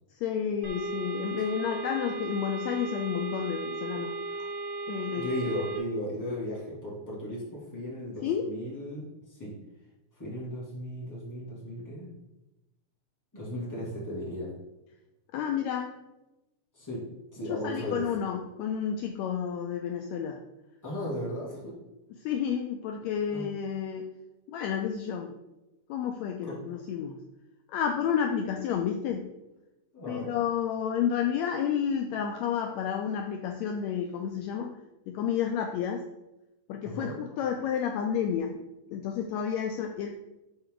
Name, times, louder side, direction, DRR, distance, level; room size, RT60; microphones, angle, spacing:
voice 1, 0.1-4.5 4.9-5.3 8.2-8.5 15.3-16.0 17.5-20.4 22.2-24.1 24.5-25.4 25.9-27.2 27.7-29.3 30.1-34.8 35.1-36.0 36.7-38.6 38.9-40.1, left 8 dB, 85° left, 4 dB, 1.5 m, -31 dB
sound 1, 0.6-5.8, right 3 dB, 60° right, 0.9 m, -36 dB
voice 2, 5.2-9.6 10.2-12.1 13.3-14.5 16.7-17.0 17.3-18.0 20.8-21.8 23.0-23.5 26.4-26.6 29.9-30.4 36.8-37.1, left 1 dB, 5° left, -6 dB, 2.0 m, -36 dB
10.0 x 4.4 x 3.9 m, 0.96 s
omnidirectional pair, 3.7 m